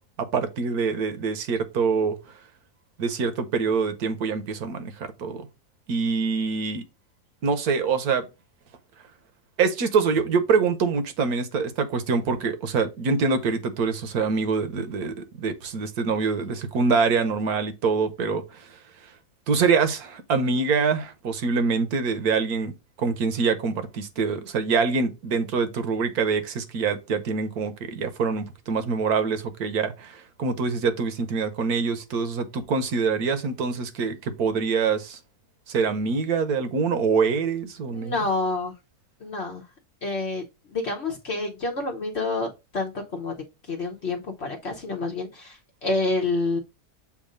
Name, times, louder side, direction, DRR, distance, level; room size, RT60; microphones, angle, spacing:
voice 1, 0.2-2.1 3.0-5.5 5.9-6.8 7.4-8.2 9.6-18.7 19.5-35.2 35.7-38.2, right 5 dB, 70° right, 1.4 m, -25 dB
voice 2, 37.9-38.7 39.2-39.6 40.0-40.4 40.7-43.3 43.7-45.6 45.8-46.6, left 2 dB, 50° left, 1.0 m, -28 dB
7.3 x 2.6 x 5.1 m
omnidirectional pair, 1.7 m